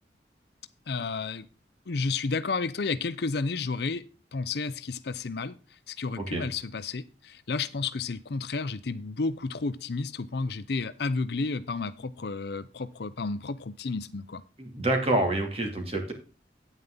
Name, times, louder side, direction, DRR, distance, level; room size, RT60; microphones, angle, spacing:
voice 1, 0.9-1.5 1.9-4.0 4.3-5.5 5.9-14.4, left 4 dB, 65° left, 14 dB, 0.6 m, -31 dB
voice 2, 14.6-16.1, right 2 dB, 35° right, 3 dB, 2.5 m, -27 dB
9.3 x 9.0 x 3.8 m, 0.34 s
head